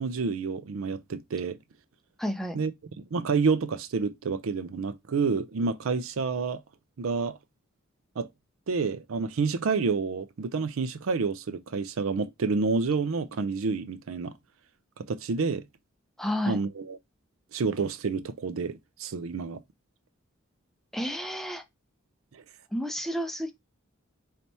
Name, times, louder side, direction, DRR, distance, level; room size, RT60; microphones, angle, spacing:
voice 1, 0.0-1.6 2.5-2.7 3.1-6.6 7.0-7.4 8.2-8.3 8.7-14.3 15.1-15.6 16.5-17.0 17.5-19.6 22.3-22.4, right 4 dB, 80° right, 0.5 m, -29 dB
voice 2, 2.2-2.6 16.2-16.6 20.9-21.6 22.7-23.5, equal, ahead, 0.4 m, -30 dB
3.3 x 2.8 x 4.1 m
head